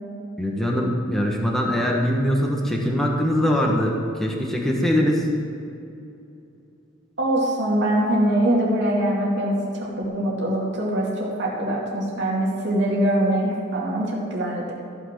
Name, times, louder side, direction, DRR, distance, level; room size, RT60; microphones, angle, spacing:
voice 1, 0.4-5.3, equal, ahead, -2 dB, 1.3 m, -22 dB
voice 2, 7.2-14.7, right 1 dB, 60° right, -4 dB, 2.5 m, -23 dB
14.5 x 6.1 x 6.0 m, 2.7 s
head